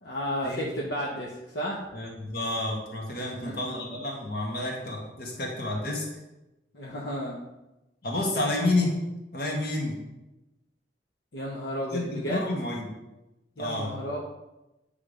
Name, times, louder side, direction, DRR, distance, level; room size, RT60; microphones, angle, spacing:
voice 1, 0.0-1.8 3.2-3.7 6.7-7.4 11.3-12.5 13.6-14.2, equal, 75° left, -3 dB, 1.1 m, -33 dB
voice 2, 1.9-6.1 8.0-9.0 9.3-9.9 11.9-12.9 13.6-14.0, left 2 dB, 55° left, -1 dB, 1.8 m, -30 dB
8.8 x 3.6 x 5.1 m, 0.97 s
head